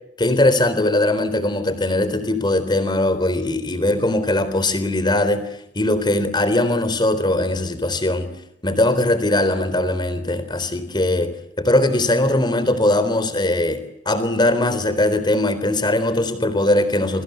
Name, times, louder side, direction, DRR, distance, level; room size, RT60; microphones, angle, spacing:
voice 1, 0.2-5.4 5.7-8.3 8.6-17.2, left 1 dB, 25° left, 13 dB, 3.8 m, -20 dB
29.0 x 24.0 x 8.1 m, 0.78 s
head